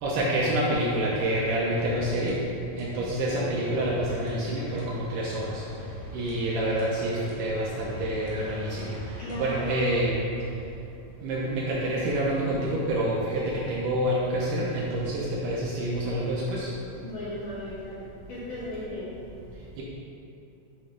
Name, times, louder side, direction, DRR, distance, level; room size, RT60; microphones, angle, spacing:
voice 1, 0.0-2.4 2.8-5.6 6.1-8.9 9.3-10.2 11.2-16.7 19.8-19.9, right 1 dB, 80° right, -5 dB, 1.8 m, -27 dB
sound 1, 1.8-10.7, left 1 dB, 65° right, 2.5 m, -43 dB
voice 2, 9.2-10.0 16.9-18.0 18.3-19.1, left 1 dB, 70° left, -9 dB, 1.9 m, -36 dB
7.8 x 3.1 x 5.1 m, 2.7 s
omnidirectional pair, 4.4 m